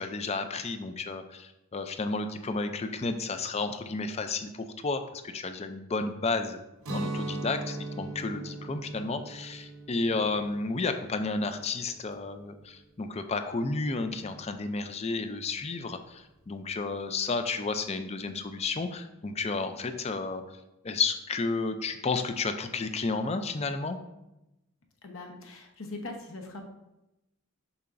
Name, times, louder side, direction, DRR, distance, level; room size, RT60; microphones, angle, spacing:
voice 1, 0.0-6.6 6.9-20.6 20.8-24.0, left 3 dB, 30° left, 8 dB, 0.4 m, -32 dB
Guitar, 6.8-12.7, right 2 dB, 70° right, 0.9 m, -39 dB
voice 2, 25.0-26.6, left 2 dB, 65° left, 3 dB, 1.0 m, -41 dB
6.9 x 5.7 x 2.6 m, 0.93 s
head